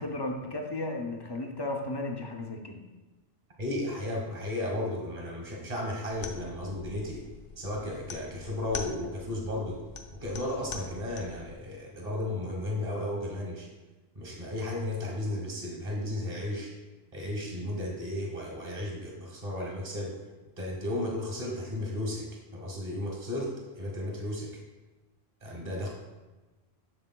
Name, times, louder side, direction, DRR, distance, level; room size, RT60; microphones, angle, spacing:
voice 1, 0.0-2.8, left 2 dB, 35° left, 3 dB, 0.4 m, -34 dB
voice 2, 3.6-7.2 7.6-9.8 10.2-13.7 14.1-16.7 17.1-20.1 20.6-22.3 22.5-24.5 25.4-25.9, left 1 dB, 40° right, -1 dB, 1.4 m, -34 dB
sound 1, 6.1-11.5, left 5 dB, 70° left, 0.8 m, -43 dB
7.8 x 6.7 x 2.2 m, 1.2 s
omnidirectional pair, 1.1 m